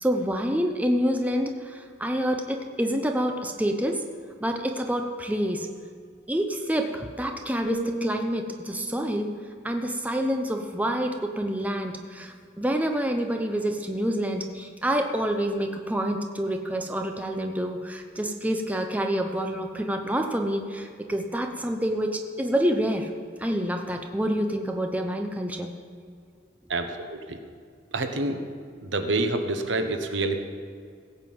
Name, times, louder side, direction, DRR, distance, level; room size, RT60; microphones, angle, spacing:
voice 1, 0.0-4.0 4.4-5.7 6.3-9.3 9.6-23.1 23.4-25.7, equal, 10° right, 4 dB, 0.7 m, -27 dB
sound 1, 7.6-11.6 12.0-12.3, right 1 dB, 40° left, 1.9 m, -38 dB
voice 2, 26.7-27.4 27.9-28.4 28.8-30.4, right 2 dB, 80° right, 6 dB, 1.1 m, -27 dB
16.5 x 5.7 x 7.8 m, 2.1 s
head